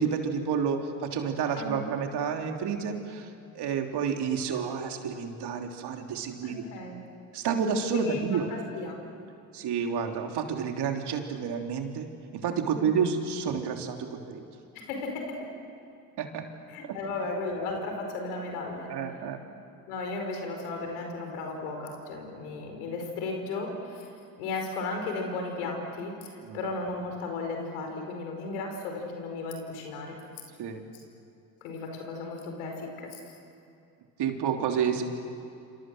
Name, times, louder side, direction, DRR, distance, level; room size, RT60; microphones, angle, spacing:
voice 1, 0.0-3.3 3.5-6.6 7.3-8.5 9.5-12.1 12.3-14.4 16.2-16.5 18.9-19.4 26.4-26.6 30.6-30.8 34.2-35.0, right 6 dB, 65° right, 3 dB, 3.2 m, -30 dB
voice 2, 6.4-7.0 7.9-9.0 12.7-12.9 14.7-15.5 16.7-18.9 19.9-24.1 24.4-30.2 31.6-33.2, left 3 dB, 90° left, 3 dB, 5.0 m, -35 dB
28.0 x 26.5 x 7.9 m, 2.5 s
hypercardioid pair, 60°, 43 cm